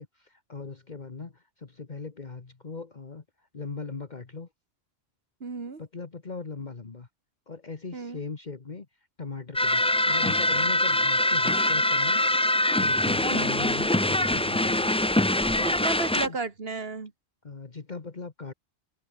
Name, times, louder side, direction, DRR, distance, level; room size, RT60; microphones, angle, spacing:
voice 1, 0.0-4.5 5.8-7.1 7.5-8.9 9.2-12.2 12.7-14.9 15.5-15.7 16.1-16.4 17.4-18.5, left 4 dB, 45° left, 1.5 m, -39 dB
voice 2, 5.4-5.8 7.9-8.2 13.2-13.5 15.7-17.1, right 4 dB, 65° right, 2.2 m, -33 dB
sound 1, 9.5-16.3, left 1 dB, 10° left, 0.3 m, -24 dB
omnidirectional pair, 1.1 m